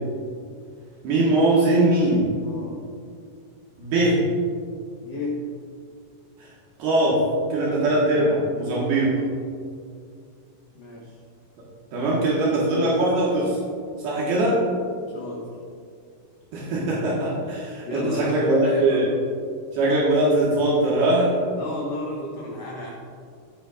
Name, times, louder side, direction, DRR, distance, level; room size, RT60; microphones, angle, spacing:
voice 1, 1.0-2.2 3.8-4.2 6.4-6.5 6.8-7.2 7.5-9.1 11.9-13.6 14.0-14.6 16.5-19.1 19.7-21.3, right 1 dB, 75° right, -6 dB, 3.5 m, -21 dB
voice 2, 2.4-2.8 5.0-5.4 10.7-11.2 15.1-15.4 17.9-19.1 21.5-22.9, left 2 dB, 90° left, -3 dB, 1.4 m, -32 dB
15.5 x 8.5 x 2.5 m, 2.2 s
omnidirectional pair, 4.6 m